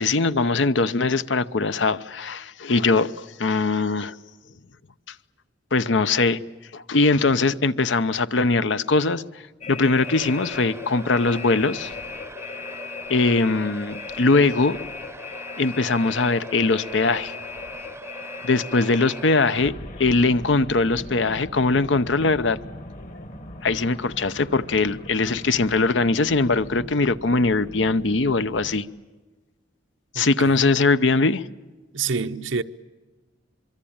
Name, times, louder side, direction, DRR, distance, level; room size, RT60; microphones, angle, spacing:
voice 1, 0.0-4.2 5.7-6.4 6.7-9.2 9.7-11.9 13.1-14.8 15.6-17.3 18.4-19.7 20.0-22.6 23.6-28.9 30.1-31.4, left 3 dB, 70° left, 0.8 m, -21 dB
sound 1, 9.6-28.8, left 3 dB, 45° left, 1.6 m, -38 dB
sound 2, 10.0-19.7, right 2 dB, 15° right, 0.8 m, -42 dB
voice 2, 30.1-30.6 31.9-32.6, right 5 dB, 80° right, 0.9 m, -27 dB
25.0 x 24.0 x 8.8 m
head